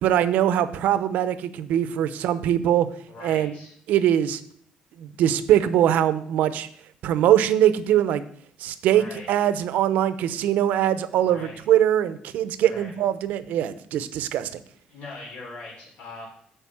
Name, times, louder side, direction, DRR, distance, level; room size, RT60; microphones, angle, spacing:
voice 1, 0.0-2.9 3.2-3.5 3.9-4.4 5.0-6.7 7.0-8.2 8.6-14.6, right 11 dB, 75° right, 13 dB, 0.7 m, -22 dB
voice 2, 3.1-3.7 8.8-9.3 11.2-11.6 12.6-12.9 14.9-16.3, left 3 dB, 65° left, -3 dB, 3.7 m, -41 dB
8.2 x 5.2 x 7.5 m, 0.62 s
cardioid pair, 130°, 3 cm